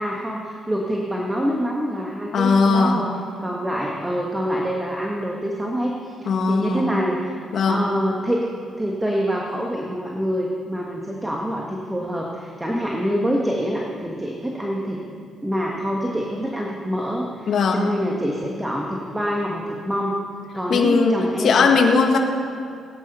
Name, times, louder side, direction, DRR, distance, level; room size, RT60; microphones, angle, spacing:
voice 1, 0.0-7.4 7.6-8.5 8.8-15.0 15.4-20.1 20.5-21.7, equal, 10° right, -1 dB, 1.7 m, -26 dB
voice 2, 2.3-3.0 6.3-6.9 7.5-7.8 17.5-17.9 20.7-22.2, left 4 dB, 60° left, 2 dB, 1.8 m, -19 dB
18.5 x 9.7 x 5.6 m, 2.4 s
cardioid pair, 90°, 0 cm